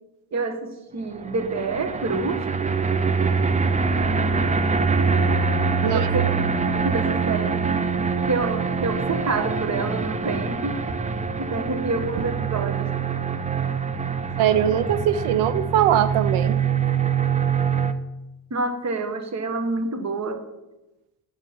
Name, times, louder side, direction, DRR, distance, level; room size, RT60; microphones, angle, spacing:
voice 1, 0.3-2.5 5.8-6.3 6.7-7.7 8.3-10.9 11.4-12.9 18.5-20.4, right 3 dB, 35° right, 8 dB, 1.3 m, -27 dB
sound 1, 1.1-17.9, right 5 dB, 15° right, 0.5 m, -24 dB
voice 2, 14.4-16.6, right 10 dB, 90° right, 14 dB, 0.7 m, -21 dB
8.9 x 4.5 x 7.0 m, 0.98 s
cardioid pair, 80°, 48 cm